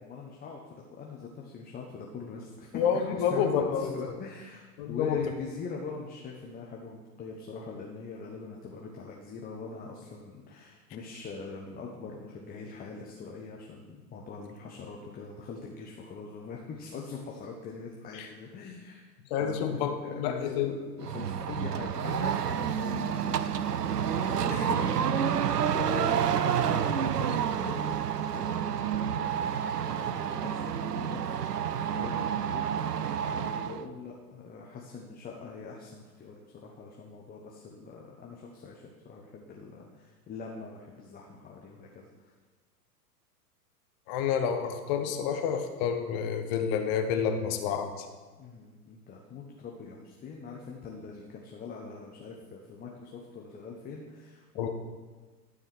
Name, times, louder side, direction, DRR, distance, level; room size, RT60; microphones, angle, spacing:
voice 1, 0.0-19.0 19.4-25.4 25.7-28.0 28.3-29.2 29.7-33.0 33.3-42.3 48.4-54.7, left 4 dB, 20° left, -1 dB, 1.1 m, -43 dB
voice 2, 2.7-3.9 4.8-5.2 18.2-18.3 19.3-20.7 24.5-24.8 44.1-47.9 54.6-54.7, left 7 dB, 40° left, 5 dB, 1.2 m, -29 dB
sound 1, 21.0-33.8, right 8 dB, 75° right, 0.7 m, -29 dB
12.5 x 4.9 x 6.2 m, 1.3 s
figure-of-eight pair, 95°, 47 cm